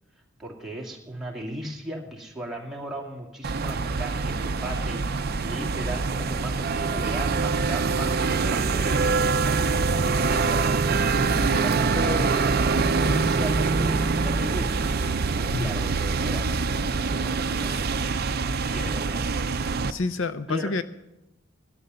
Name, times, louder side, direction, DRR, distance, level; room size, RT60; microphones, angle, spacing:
voice 1, 0.4-9.8 10.3-14.8 15.3-16.4 17.0-18.2 18.7-19.2 20.5-20.7, right 1 dB, ahead, -3 dB, 2.3 m, -36 dB
sound 1, 3.4-19.9, right 4 dB, 45° right, 0.6 m, -24 dB
voice 2, 19.9-20.8, left 3 dB, 60° left, 12 dB, 0.5 m, -28 dB
17.0 x 12.5 x 5.6 m, 0.93 s
head